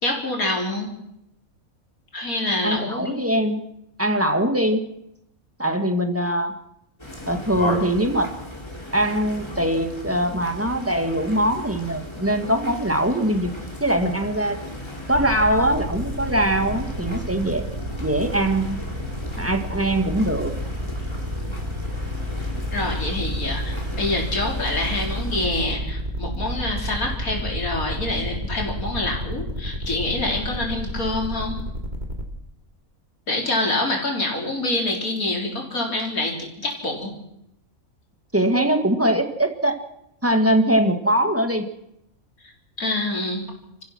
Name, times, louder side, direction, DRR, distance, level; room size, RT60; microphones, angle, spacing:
voice 1, 0.0-0.9 2.1-3.2 22.7-31.6 33.3-37.1 42.8-43.5, left 2 dB, 85° left, 0 dB, 4.4 m, -26 dB
voice 2, 2.6-3.6 4.0-4.8 5.6-6.5 7.3-8.4 8.9-13.5 13.8-14.6 15.1-17.6 18.0-18.8 19.4-20.5 38.3-39.8 40.2-41.7, right 1 dB, 10° right, 5 dB, 1.9 m, -22 dB
sound 1, 7.0-25.5, left 1 dB, 20° left, 2.9 m, -36 dB
sound 2, 15.1-32.2, equal, 30° right, 2.6 m, -30 dB
28.0 x 15.0 x 6.2 m, 0.82 s
omnidirectional pair, 1.5 m